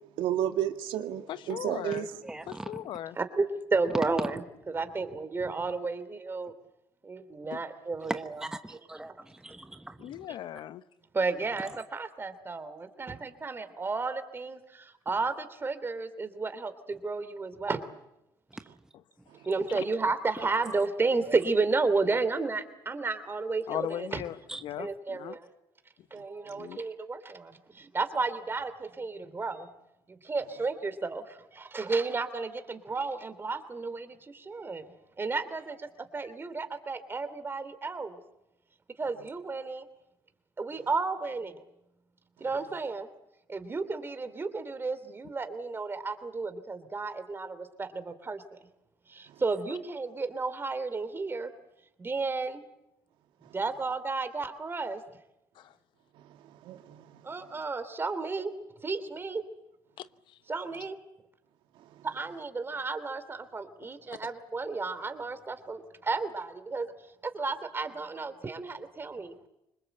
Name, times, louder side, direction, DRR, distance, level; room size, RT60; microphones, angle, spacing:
voice 1, 0.2-2.0 56.6-57.1, right 11 dB, 80° right, 6 dB, 1.9 m, -31 dB
voice 2, 1.3-2.1 2.5-3.2 7.5-7.6 10.0-10.8 19.7-19.8 23.7-25.4 26.6-26.8 55.6-55.7 60.0-60.4, left 12 dB, 70° left, 13 dB, 1.0 m, -38 dB
voice 3, 2.2-2.8 4.0-4.1 8.1-10.2 24.5-24.6, right 1 dB, 5° right, 8 dB, 1.1 m, -39 dB
voice 4, 3.2-3.5 3.7-4.4 4.7-6.5 7.0-8.4 11.1-17.9 19.5-24.2 24.8-25.5 26.1-29.7 30.1-34.9 35.2-38.2 39.0-39.8 40.6-41.6 42.4-43.1 43.5-48.4 49.1-51.5 52.0-52.6 53.5-55.0 57.2-58.5 58.8-59.4 60.5-61.0 62.0-66.9 67.2-69.3, right 3 dB, 25° right, 11 dB, 3.0 m, -32 dB
25.5 x 21.0 x 8.0 m, 0.87 s
cardioid pair, 90°, 9 cm